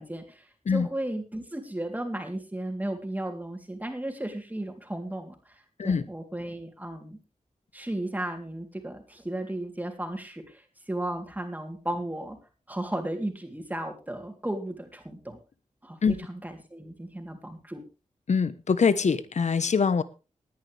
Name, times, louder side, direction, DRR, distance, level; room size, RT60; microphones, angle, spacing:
voice 1, 0.0-5.5 5.8-7.2 7.7-12.4 12.7-15.4 15.8-17.8, right 1 dB, 15° right, 3.3 m, -35 dB
voice 2, 18.3-20.0, left 5 dB, 65° left, 1.1 m, -23 dB
19.5 x 10.5 x 3.5 m
wide cardioid pair, 90°, 13 cm